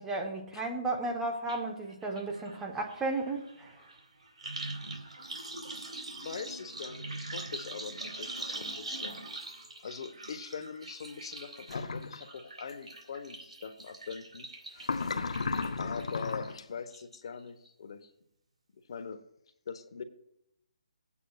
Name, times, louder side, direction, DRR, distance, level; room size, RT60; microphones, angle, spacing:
voice 1, 0.0-3.7, right 2 dB, 10° right, 2 dB, 1.0 m, -34 dB
sound 1, 1.5-1.6 1.9-16.5 16.9-17.4 17.7-17.8, right 2 dB, 80° right, 2.6 m, -43 dB
voice 2, 6.2-9.2 9.8-14.5 15.8-18.1 18.7-19.2 19.7-20.0, left 6 dB, 50° left, 7 dB, 1.0 m, -42 dB
sound 2, 11.7-12.2 14.8-16.6, left 4 dB, 75° left, 0.7 m, -34 dB
19.5 x 8.3 x 2.4 m, 0.81 s
hypercardioid pair, 165°, 3 cm